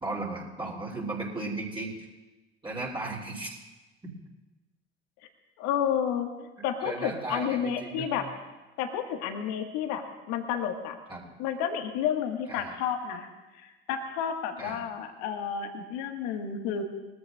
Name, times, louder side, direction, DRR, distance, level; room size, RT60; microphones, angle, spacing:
voice 1, 0.0-2.1 2.6-3.6 4.0-4.1 6.8-8.1 11.1-11.2 12.5-12.7 14.6-14.8, right 2 dB, 15° right, -4 dB, 2.9 m, -35 dB
voice 2, 5.6-8.2 8.8-11.0 11.4-13.3 13.6-16.8, left 8 dB, 55° left, 6 dB, 1.6 m, -31 dB
22.0 x 14.5 x 2.4 m, 1.1 s
figure-of-eight pair, 65°, 33 cm